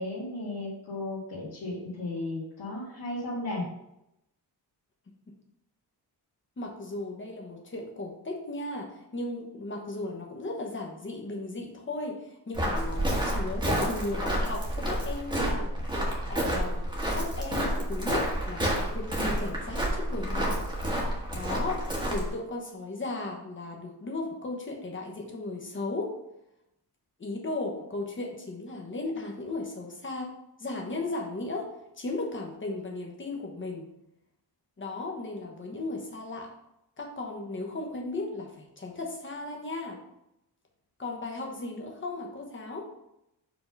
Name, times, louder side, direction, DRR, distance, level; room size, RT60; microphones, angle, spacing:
voice 1, 0.0-3.6, left 2 dB, 75° left, -9 dB, 1.8 m, -35 dB
voice 2, 6.6-15.7 16.3-16.8 17.1-20.6 21.3-26.2 27.2-30.3 30.6-31.7 32.0-33.9 34.8-36.5 37.0-40.0 41.0-42.9, left 2 dB, 30° left, 0 dB, 1.1 m, -36 dB
Walk footsteps, 12.5-22.3, right 1 dB, 10° right, 1.3 m, -29 dB
4.9 x 3.7 x 5.3 m, 0.84 s
wide cardioid pair, 165°, 41 cm